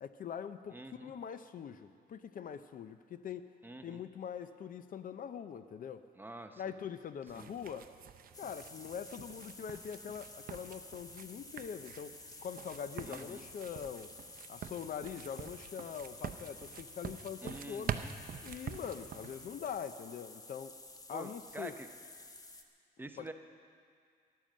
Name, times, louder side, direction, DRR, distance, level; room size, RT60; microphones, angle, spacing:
voice 1, 0.0-3.5 3.8-6.0 6.6-7.9 8.4-14.1 14.5-17.9 18.4-20.7 21.1-21.8 23.2-23.3, left 8 dB, 55° left, 11 dB, 0.6 m, -43 dB
voice 2, 0.7-1.1 3.6-4.0 6.2-6.7 7.4-7.5 13.0-13.4 17.4-18.1 21.1-21.9 23.0-23.3, right 2 dB, 10° right, 6 dB, 0.7 m, -47 dB
sound 1, 7.3-19.8, right 9 dB, 55° right, 0.6 m, -46 dB
sound 2, 8.3-22.6, left 2 dB, 20° left, 0.9 m, -52 dB
14.5 x 10.5 x 7.5 m, 2.2 s
cardioid pair, 130°, 17 cm